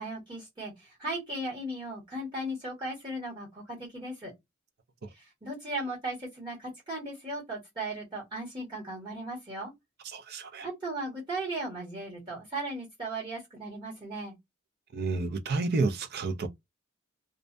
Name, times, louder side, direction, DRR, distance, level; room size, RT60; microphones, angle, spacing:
voice 1, 0.0-4.3 5.1-9.7 10.6-14.3, right 1 dB, 25° right, 1.3 m, -37 dB
voice 2, 10.1-10.7 14.9-16.5, right 3 dB, 50° right, 0.5 m, -30 dB
2.4 x 2.2 x 2.5 m
head